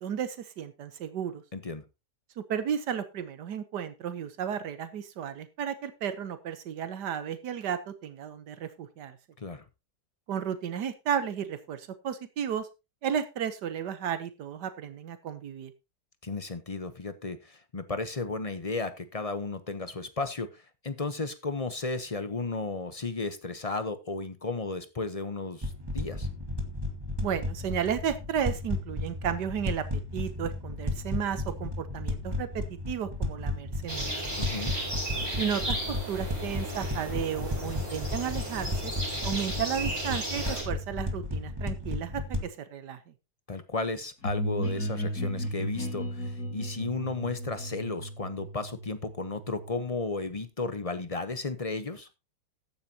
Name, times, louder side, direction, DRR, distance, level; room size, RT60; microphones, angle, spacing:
voice 1, 0.0-1.4 2.4-9.2 10.3-12.7 13.0-15.7 27.2-34.1 35.4-38.9 39.2-43.0, right 8 dB, 85° right, 10 dB, 1.6 m, -33 dB
voice 2, 1.5-1.8 9.4-9.6 16.2-26.3 34.4-34.7 43.5-52.1, left 3 dB, 30° left, 11 dB, 0.7 m, -34 dB
sound 1, 25.6-42.4, left 2 dB, 15° right, 1.4 m, -34 dB
sound 2, 33.9-40.6, right 1 dB, 60° right, 6.5 m, -35 dB
sound 3, 44.2-49.9, equal, 65° left, 4.6 m, -34 dB
14.5 x 10.0 x 2.9 m, 0.26 s
omnidirectional pair, 1.8 m